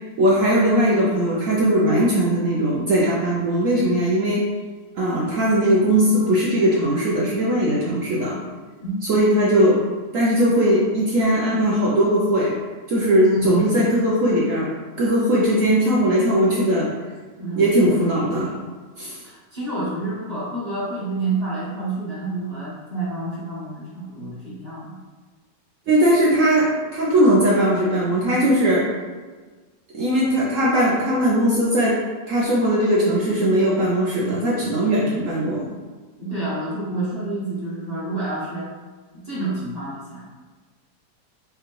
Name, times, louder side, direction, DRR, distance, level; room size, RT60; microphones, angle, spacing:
voice 1, 0.2-4.4 5.0-8.4 9.0-9.8 10.1-12.5 12.9-14.7 15.0-16.9 17.6-18.5 19.0-19.2 25.9-28.9 29.9-32.0 32.3-35.6, right 1 dB, 70° right, -5 dB, 0.7 m, -19 dB
voice 2, 8.8-9.2 13.2-13.5 17.4-17.7 19.2-24.9 36.2-38.7 39.1-40.2, right 2 dB, 30° right, -9 dB, 0.8 m, -29 dB
5.0 x 2.2 x 3.1 m, 1.4 s
omnidirectional pair, 1.9 m